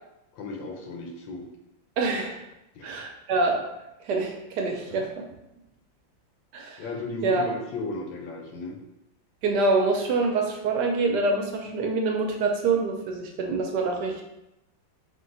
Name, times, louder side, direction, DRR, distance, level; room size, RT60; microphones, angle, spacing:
voice 1, 0.3-1.5 2.7-2.9 6.8-8.8, left 3 dB, 80° left, 1 dB, 1.4 m, -34 dB
voice 2, 2.0-2.4 2.8-3.6 4.0-5.3 6.5-6.8 7.2-7.4 9.4-14.2, right 3 dB, 75° right, 2 dB, 1.1 m, -25 dB
3.7 x 2.7 x 3.8 m, 0.90 s
omnidirectional pair, 2.0 m